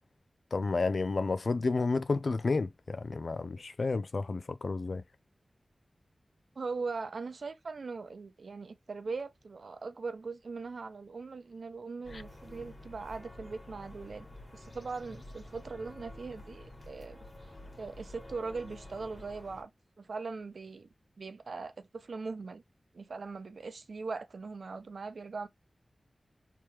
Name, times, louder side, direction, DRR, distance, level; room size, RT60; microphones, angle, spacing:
voice 1, 0.5-5.0 12.1-12.2, left 3 dB, 70° left, 0.4 m, -31 dB
voice 2, 6.6-14.3 14.5-17.2 17.8-19.7 20.0-20.9 21.2-22.6 22.9-25.5, right 4 dB, 80° right, 0.6 m, -40 dB
sound 1, 12.0-19.6, left 1 dB, 35° left, 1.7 m, -49 dB
3.5 x 3.0 x 3.1 m
wide cardioid pair, 75°, 0 cm